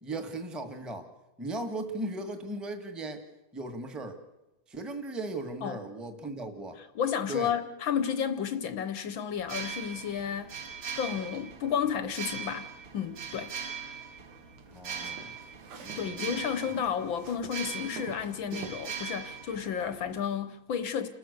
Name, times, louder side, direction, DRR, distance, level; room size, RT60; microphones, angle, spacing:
voice 1, 0.0-1.1 1.4-3.2 3.5-4.2 4.7-6.8 7.3-7.5 14.7-15.3 15.7-16.4, right 2 dB, ahead, 0.7 m, -37 dB
voice 2, 6.9-10.5 10.9-13.6 16.0-21.1, left 8 dB, 65° left, 1.2 m, -32 dB
sound 1, 9.4-20.2, right 6 dB, 50° right, 2.1 m, -41 dB
sound 2, 14.6-16.1 16.4-18.8, right 5 dB, 65° right, 3.0 m, -45 dB
30.0 x 13.5 x 6.7 m
omnidirectional pair, 3.3 m